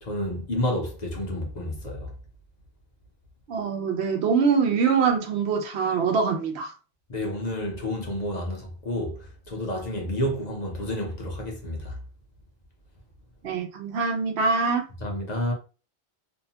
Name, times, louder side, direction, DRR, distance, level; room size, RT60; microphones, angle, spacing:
voice 1, 0.0-2.1 7.1-12.0 15.0-15.5, left 1 dB, 45° left, 0.7 m, -30 dB
voice 2, 3.5-6.7 13.4-14.9, right 5 dB, 85° right, 0.8 m, -24 dB
2.6 x 2.1 x 2.7 m
omnidirectional pair, 1.1 m